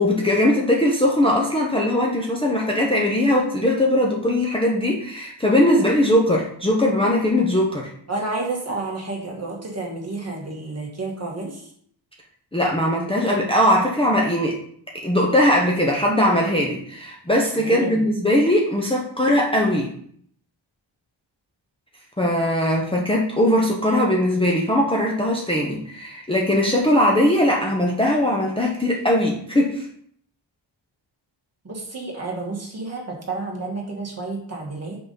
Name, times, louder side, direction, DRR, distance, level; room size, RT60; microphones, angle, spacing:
voice 1, 0.0-7.9 12.5-14.6 15.0-19.9 22.2-29.9, left 1 dB, 10° left, -3 dB, 0.8 m, -20 dB
voice 2, 8.1-11.7 17.5-18.1 31.6-35.0, right 3 dB, 30° right, -2 dB, 1.7 m, -30 dB
5.7 x 3.9 x 5.4 m, 0.63 s
wide cardioid pair, 165°, 47 cm